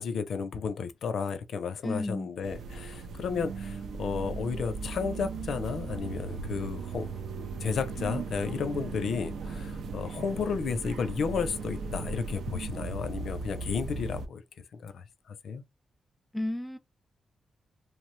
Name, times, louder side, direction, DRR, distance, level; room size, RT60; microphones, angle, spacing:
voice 1, 0.0-14.4 14.8-15.6, left 5 dB, 75° left, 0.5 m, -33 dB
voice 2, 1.8-2.3 16.3-16.8, left 1 dB, 10° left, 0.4 m, -32 dB
sound 1, 2.4-14.3, right 4 dB, 85° right, 0.4 m, -37 dB
3.0 x 2.0 x 3.0 m
wide cardioid pair, 130°, 0 cm